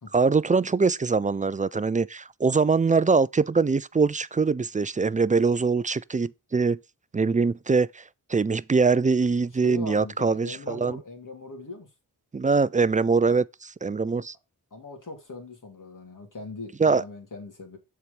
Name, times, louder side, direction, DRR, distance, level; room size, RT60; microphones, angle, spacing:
voice 1, 0.1-6.8 7.1-8.0 8.3-11.0 12.3-14.3 16.8-17.0, right 4 dB, 20° right, 0.4 m, -23 dB
voice 2, 9.6-11.9 14.7-17.8, left 3 dB, 50° left, 2.9 m, -40 dB
7.0 x 4.7 x 5.2 m
cardioid pair, 50°, 39 cm